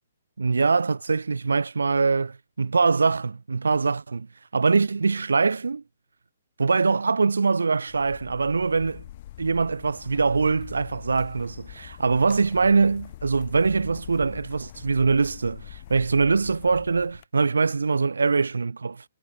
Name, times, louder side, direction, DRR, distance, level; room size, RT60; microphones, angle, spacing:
voice 1, 0.4-4.3 4.5-5.8 6.6-9.1 9.4-19.0, right 4 dB, 85° right, 0.3 m, -23 dB
sound 1, 7.9-17.2, left 14 dB, 45° left, 4.6 m, -44 dB
hypercardioid pair, 135°, 0 cm